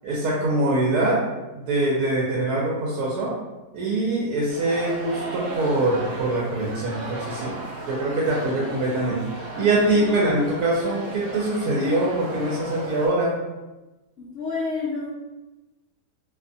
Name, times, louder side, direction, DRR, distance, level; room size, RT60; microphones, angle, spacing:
voice 1, 0.0-1.3 1.7-3.4 3.7-7.6 7.9-9.2 9.6-13.4, right 2 dB, 70° right, -5 dB, 1.0 m, -23 dB
sound 1, 4.5-13.1, right 2 dB, 50° right, 1.0 m, -36 dB
voice 2, 14.2-15.1, left 4 dB, 75° left, -7 dB, 0.6 m, -31 dB
2.7 x 2.4 x 2.5 m, 1.1 s
omnidirectional pair, 1.8 m